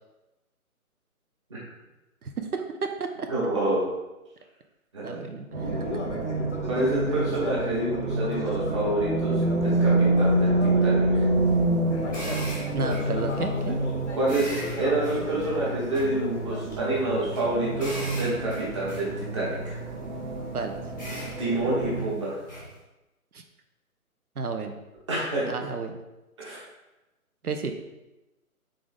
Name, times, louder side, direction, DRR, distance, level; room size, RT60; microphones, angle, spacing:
voice 1, 2.2-3.3 5.0-5.8 12.7-13.8 20.5-20.8 23.3-23.4 24.4-24.7 25.4-26.0 27.4-27.7, right 4 dB, 85° right, 5 dB, 0.6 m, -32 dB
voice 2, 3.3-3.9 4.9-5.1 6.6-11.3 14.1-19.8 21.4-22.4 25.1-25.5 26.4-26.6, right 2 dB, 20° right, -6 dB, 0.9 m, -28 dB
sound 1, 5.5-22.1, right 2 dB, 60° right, 1.1 m, -27 dB
Conversation, 5.6-11.4 11.8-16.7, left 3 dB, 55° left, 0.6 m, -37 dB
sound 2, 11.3-22.8, equal, 15° left, 0.7 m, -42 dB
3.7 x 3.5 x 3.5 m, 1.0 s
figure-of-eight pair, 145°, 44 cm